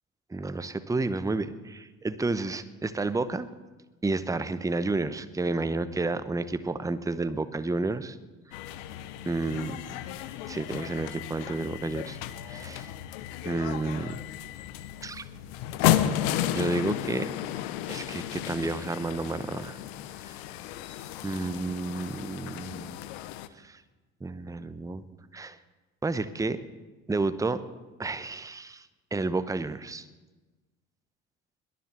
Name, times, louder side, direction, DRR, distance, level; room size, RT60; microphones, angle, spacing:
voice 1, 0.3-3.5 4.0-8.2 9.3-9.8 10.5-12.2 12.5-12.9 13.4-14.2 15.0-15.2 16.5-17.3 17.9-19.8 21.2-23.0 23.6-23.8 24.2-25.0 25.3-25.6 26.0-26.6 27.1-27.6 28.0-30.1, right 3 dB, 10° right, 12 dB, 0.9 m, -31 dB
sound 1, 8.5-23.5, left 12 dB, 65° left, 0.9 m, -33 dB
21.5 x 7.8 x 6.8 m, 1.2 s
figure-of-eight pair, 55°, 39 cm